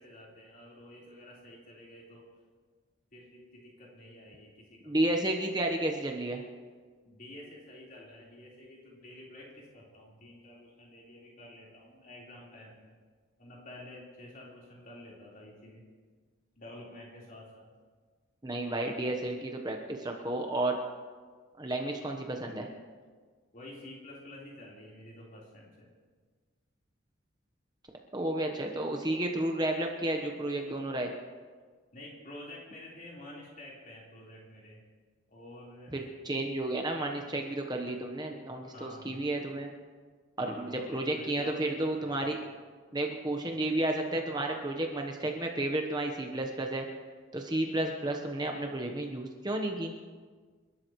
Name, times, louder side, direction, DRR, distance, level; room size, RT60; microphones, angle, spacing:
voice 1, 0.0-2.2 3.1-5.0 7.0-12.9 13.4-15.8 16.6-17.7 23.5-25.9 31.9-34.8 35.3-36.0 38.7-39.2 40.4-42.3, left 1 dB, 40° left, -4 dB, 4.1 m, -49 dB
voice 2, 4.9-6.4 18.4-20.8 21.6-22.7 28.1-31.1 35.9-39.7 40.4-42.4 42.9-46.8 47.3-49.9, right 1 dB, 20° right, 2 dB, 1.1 m, -32 dB
29.0 x 12.5 x 3.2 m, 1.5 s
head